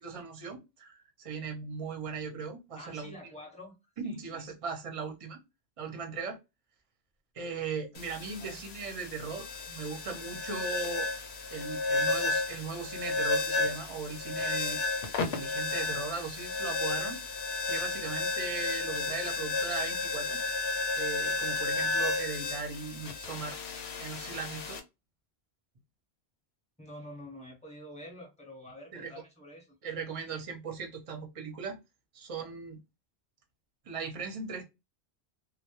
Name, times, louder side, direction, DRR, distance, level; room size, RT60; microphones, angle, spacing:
voice 1, 0.0-3.1 4.0-5.4 5.8-6.4 7.3-11.1 11.5-14.8 15.2-17.2 17.7-20.4 21.0-23.6 24.0-24.8 28.9-29.1 29.8-31.8 32.1-32.8 33.9-34.6, right 5 dB, 40° right, 0.5 m, -38 dB
voice 2, 2.7-3.8 4.0-4.5 8.4-8.6 26.8-29.7, left 1 dB, 5° left, 0.7 m, -47 dB
sound 1, 7.9-24.8, left 3 dB, 75° left, 0.8 m, -33 dB
2.2 x 2.0 x 2.8 m
omnidirectional pair, 1.1 m